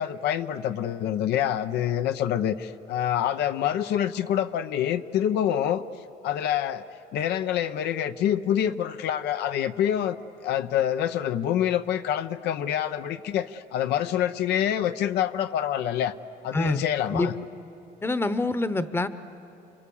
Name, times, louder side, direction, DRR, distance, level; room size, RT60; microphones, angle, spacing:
voice 1, 0.0-5.8 6.2-6.8 7.1-16.1 16.4-17.3, left 10 dB, 80° left, 10 dB, 0.8 m, -26 dB
voice 2, 16.5-17.3 18.0-19.1, left 2 dB, 15° left, 12 dB, 0.9 m, -26 dB
30.0 x 25.5 x 7.1 m, 3.0 s
cardioid pair, 110°, 17 cm